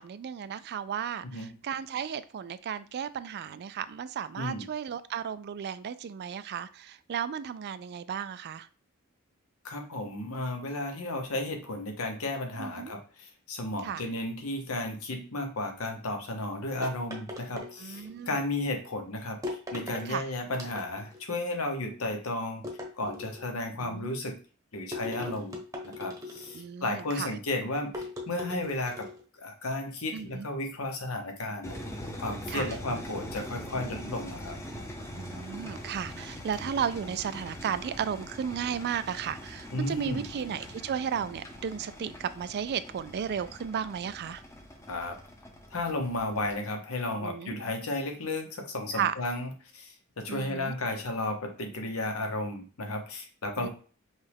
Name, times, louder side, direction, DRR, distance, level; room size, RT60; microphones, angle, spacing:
voice 1, 0.0-8.7 12.6-12.9 13.8-14.1 17.8-18.5 20.1-20.3 23.8-24.1 26.5-27.3 30.1-30.5 32.5-32.7 35.2-44.4 47.2-47.6 48.9-49.1 50.3-50.7 53.6-53.7, right 8 dB, 50° right, 14 dB, 0.3 m, -34 dB
voice 2, 4.4-4.7 9.6-22.6 23.0-24.4 24.7-25.6 25.8-29.1 29.4-31.7 32.2-34.6 39.7-40.3 44.9-45.1 45.7-53.7, left 2 dB, 75° left, 4 dB, 1.0 m, -33 dB
sound 1, 16.8-18.2 19.4-20.1 20.5-21.2 22.6-23.6 24.9-26.7 27.9-29.2, left 2 dB, 15° right, 0.9 m, -39 dB
sound 2, 31.6-46.5, equal, 15° left, 0.8 m, -43 dB
5.5 x 2.4 x 3.5 m, 0.39 s
head